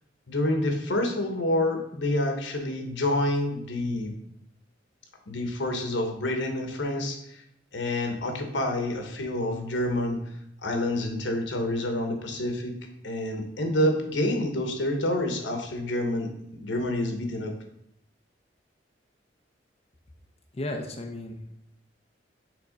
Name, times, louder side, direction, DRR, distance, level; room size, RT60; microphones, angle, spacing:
voice 1, 0.3-4.1 5.3-7.4 7.7-10.2 10.6-12.7 13.0-17.5, left 1 dB, 85° left, 4 dB, 1.2 m, -28 dB
voice 2, 20.5-21.5, left 1 dB, 35° left, 2 dB, 0.7 m, -34 dB
6.7 x 3.6 x 5.1 m, 0.76 s
head